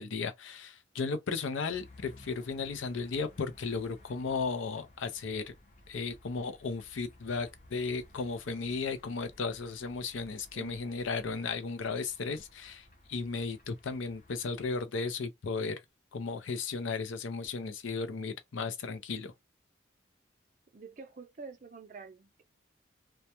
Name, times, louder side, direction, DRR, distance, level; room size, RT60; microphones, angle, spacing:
voice 1, 0.0-5.4 5.9-15.8 16.1-19.3, left 4 dB, 90° left, 0.5 m, -35 dB
sound 1, 1.7-14.9, left 1 dB, 40° left, 0.6 m, -58 dB
voice 2, 10.5-10.9 20.7-22.4, right 4 dB, 40° right, 0.4 m, -48 dB
2.2 x 2.1 x 2.8 m
head